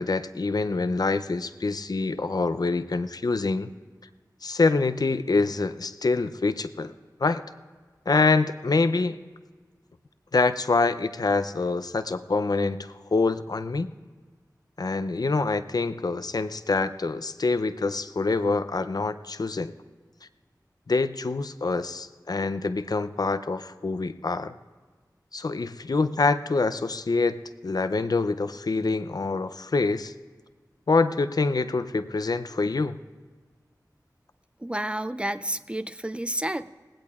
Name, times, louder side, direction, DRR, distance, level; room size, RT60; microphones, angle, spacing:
voice 1, 0.0-3.7 4.4-6.9 7.2-7.4 8.1-9.2 10.3-13.9 14.8-19.7 20.9-24.5 25.3-30.1 30.9-33.0, left 3 dB, 65° left, 12 dB, 0.5 m, -25 dB
voice 2, 34.6-36.7, right 1 dB, 15° right, 12 dB, 0.3 m, -30 dB
19.0 x 16.5 x 2.4 m, 1.4 s
wide cardioid pair, 60°, 7 cm